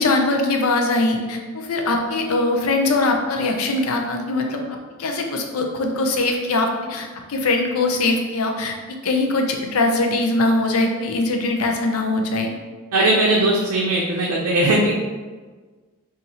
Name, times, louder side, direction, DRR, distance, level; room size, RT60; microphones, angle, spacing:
voice 1, 0.0-12.5, left 2 dB, 75° left, 3 dB, 0.5 m, -22 dB
voice 2, 12.9-14.9, right 2 dB, 85° right, -2 dB, 0.5 m, -19 dB
3.9 x 2.5 x 2.9 m, 1.4 s
head